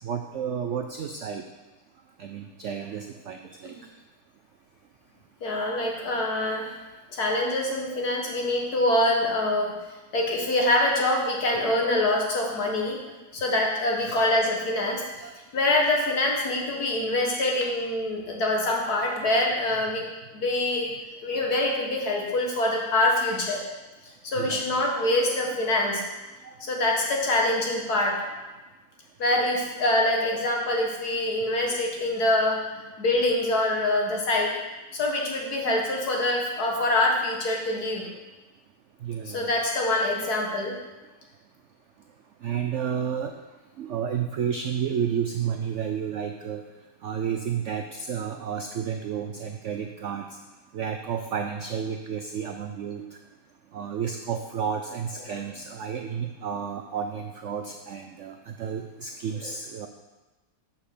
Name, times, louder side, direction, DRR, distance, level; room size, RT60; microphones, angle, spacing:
voice 1, 0.0-1.4 2.2-3.8 11.1-11.2 12.4-12.5 13.5-13.7 14.0-14.3 15.2-15.3 22.8-22.9 24.4-25.2 26.4-26.5 31.7-31.8 39.0-39.6 42.4-43.3 43.8-46.6 47.0-50.3 50.7-53.0 53.7-59.9, right 7 dB, 70° right, 5 dB, 0.7 m, -31 dB
voice 2, 5.4-6.7 7.1-9.7 10.1-13.0 13.3-15.3 15.5-20.1 20.3-20.9 21.2-23.6 24.2-26.0 26.6-28.2 29.2-32.6 33.0-34.5 34.9-38.1 39.3-40.8 55.2-55.5, left 1 dB, 65° left, -1 dB, 2.0 m, -25 dB
7.4 x 5.6 x 6.6 m, 1.1 s
omnidirectional pair, 1.8 m